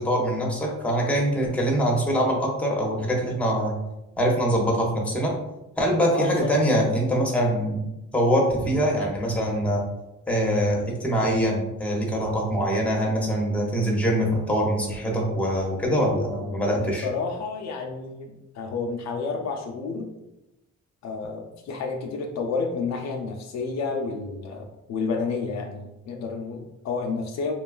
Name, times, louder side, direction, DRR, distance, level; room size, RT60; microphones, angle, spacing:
voice 1, 0.0-3.7 4.2-5.3 5.8-7.8 8.1-9.8 10.3-17.1, equal, 5° left, -2 dB, 0.7 m, -23 dB
voice 2, 6.1-6.8 16.9-20.1 21.0-27.5, left 4 dB, 60° left, 2 dB, 0.4 m, -30 dB
2.9 x 2.2 x 2.3 m, 0.94 s
cardioid pair, 90°, 30 cm